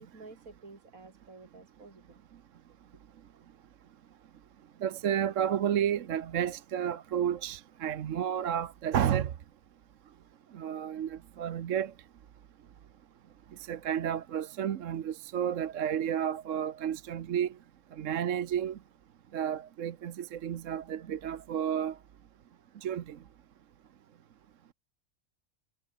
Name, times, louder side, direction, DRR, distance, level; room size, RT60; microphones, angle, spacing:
voice 1, 0.0-2.2 2.9-3.0, right 3 dB, 85° right, 3.9 m, -51 dB
voice 2, 4.8-9.3 10.5-11.9 13.7-17.5 17.9-18.8 19.3-22.0 22.8-23.2, right 9 dB, 70° right, 1.2 m, -31 dB
omnidirectional pair, 1.4 m